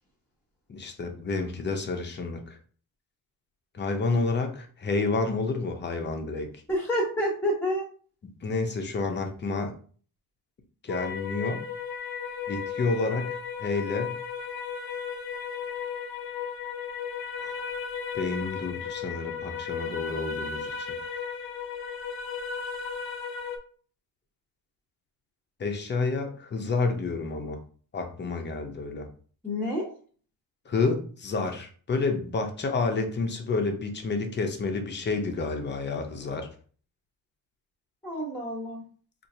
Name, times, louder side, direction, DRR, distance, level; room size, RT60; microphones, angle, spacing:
voice 1, 0.7-2.6 3.7-6.5 8.4-9.8 10.8-11.7 12.5-14.2 17.4-17.6 18.1-20.9 25.6-27.6 27.9-29.1 30.7-36.5, left 3 dB, 30° left, 4 dB, 0.7 m, -29 dB
voice 2, 6.7-7.8 29.4-29.9 38.0-38.8, equal, 5° left, -3 dB, 1.1 m, -28 dB
sound 1, 10.9-23.6, left 6 dB, 65° left, 0.7 m, -35 dB
4.3 x 2.5 x 2.7 m, 0.43 s
cardioid pair, 135°, 38 cm